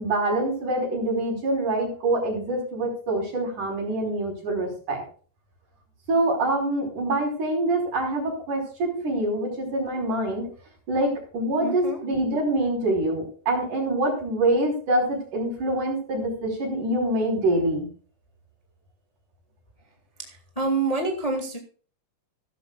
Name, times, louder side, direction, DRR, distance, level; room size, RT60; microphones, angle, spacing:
voice 1, 0.0-5.0 6.1-10.5 10.9-17.9, right 1 dB, 65° right, 1 dB, 6.4 m, -25 dB
voice 2, 11.6-12.0 20.2-21.6, right 3 dB, 15° left, 3 dB, 1.7 m, -27 dB
16.0 x 13.0 x 2.4 m, 0.41 s
omnidirectional pair, 3.8 m